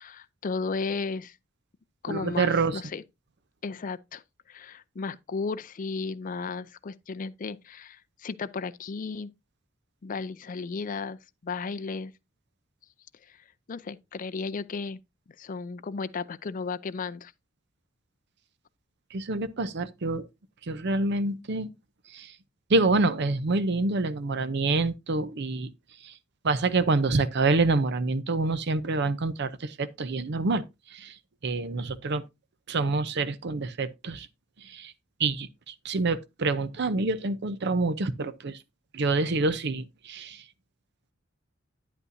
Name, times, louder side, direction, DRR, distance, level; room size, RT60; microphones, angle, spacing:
voice 1, 0.0-1.4 2.0-3.0 3.6-4.2 4.5-9.3 10.0-12.1 13.2-15.0 15.4-17.3, left 4 dB, 40° left, 0.4 m, -34 dB
voice 2, 2.1-2.8 19.1-20.2 20.7-21.7 22.1-22.3 22.7-25.7 26.4-29.5 29.8-30.6 30.9-31.1 31.4-32.2 32.7-34.3 34.7-34.9 35.2-38.6 38.9-40.4, right 3 dB, 55° right, 0.6 m, -26 dB
9.6 x 8.2 x 2.6 m
head